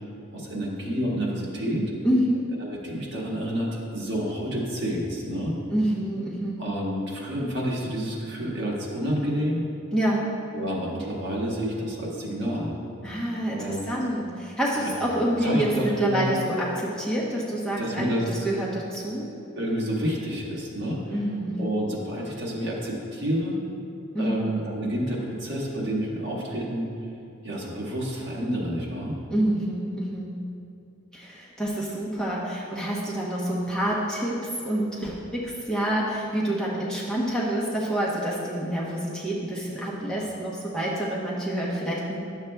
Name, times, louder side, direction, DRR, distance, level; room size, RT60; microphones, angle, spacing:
voice 1, 0.3-1.9 2.6-5.6 6.6-9.7 10.5-12.8 13.5-13.8 14.8-15.0 15.4-16.3 17.8-18.2 19.6-21.2 21.6-23.6 24.2-26.9 27.4-29.2, equal, 60° right, -4 dB, 1.4 m, -29 dB
voice 2, 2.0-2.5 5.7-6.7 9.9-10.2 13.0-19.3 21.1-21.8 24.1-24.5 29.3-30.3 31.1-42.2, right 1 dB, 5° left, -7 dB, 0.8 m, -27 dB
10.5 x 7.1 x 2.2 m, 2.7 s
head